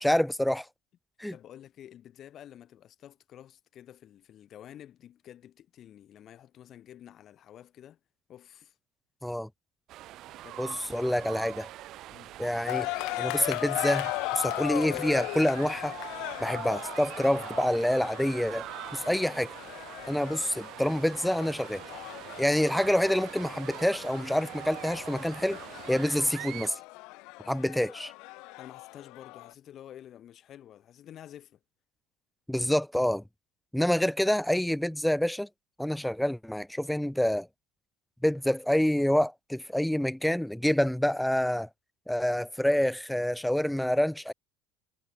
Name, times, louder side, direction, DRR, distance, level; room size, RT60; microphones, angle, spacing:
voice 1, 0.0-0.7 1.2-1.3 9.2-9.5 10.6-11.7 12.4-12.9 13.2-15.9 16.4-19.5 20.1-21.8 22.4-25.6 25.9-26.8 27.5-28.1 32.5-33.2 33.7-35.5 35.8-37.5 38.2-41.7 42.1-44.3, left 1 dB, ahead, 0.5 m, -27 dB
voice 2, 1.3-8.0 8.3-8.7 10.3-10.9 11.1-11.4 12.1-12.4 28.6-31.6, left 11 dB, 40° left, 4.6 m, -50 dB
sound 1, 9.9-26.7, right 14 dB, 50° right, 0.6 m, -43 dB
sound 2, 12.7-29.5, left 25 dB, 65° left, 1.4 m, -38 dB
supercardioid pair, 120°, 0 cm